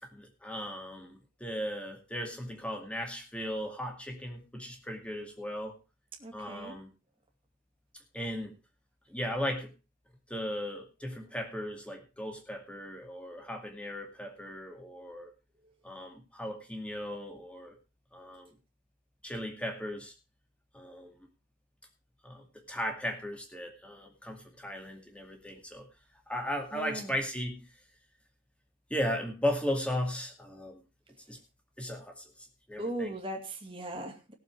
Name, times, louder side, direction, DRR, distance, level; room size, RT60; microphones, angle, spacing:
voice 1, 0.0-5.8 6.3-6.9 8.1-8.5 9.1-9.7 10.3-15.3 15.8-17.8 18.1-18.5 19.2-20.1 20.7-21.1 22.2-25.9 26.3-27.7 28.9-30.8 31.3-31.4 31.8-33.1, equal, 5° left, 3 dB, 2.2 m, -36 dB
voice 2, 6.2-6.8 26.7-27.2 32.8-34.3, right 1 dB, 25° right, 3 dB, 2.4 m, -38 dB
18.0 x 7.3 x 4.6 m, 0.30 s
head